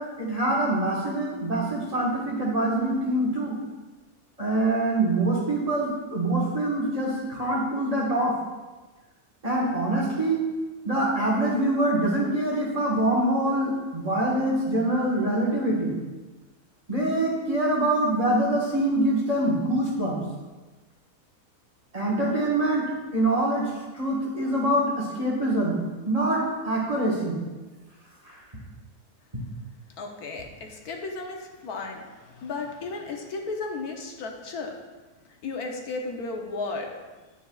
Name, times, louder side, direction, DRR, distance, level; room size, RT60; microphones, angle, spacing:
voice 1, 0.0-3.6 4.4-8.4 9.4-10.4 10.8-15.9 16.9-20.2 21.9-27.4 28.2-28.4, right 1 dB, 25° right, -4 dB, 1.5 m, -25 dB
voice 2, 30.0-34.8 35.4-36.9, left 3 dB, 75° left, 2 dB, 1.4 m, -34 dB
10.0 x 8.1 x 2.4 m, 1.2 s
omnidirectional pair, 1.6 m